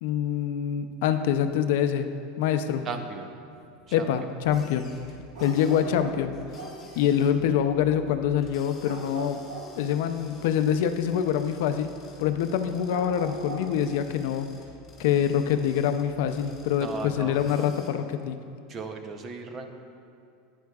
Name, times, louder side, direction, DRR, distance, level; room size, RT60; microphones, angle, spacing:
voice 1, 0.0-2.1 2.4-2.8 3.9-4.9 5.4-6.3 7.0-9.4 9.8-11.9 12.2-14.5 15.0-18.4, left 9 dB, 70° left, 8 dB, 0.4 m, -25 dB
voice 2, 2.8-3.3 3.9-4.1 16.8-17.7 18.7-19.7, right 4 dB, 30° right, 6 dB, 0.6 m, -36 dB
sound 1, 4.4-17.9, left 3 dB, 25° left, 1.9 m, -51 dB
sound 2, 5.3-6.9 8.8-9.9 12.9-13.8, right 2 dB, 90° right, 1.8 m, -40 dB
11.5 x 9.3 x 2.4 m, 2.4 s
supercardioid pair, 150°, 0 cm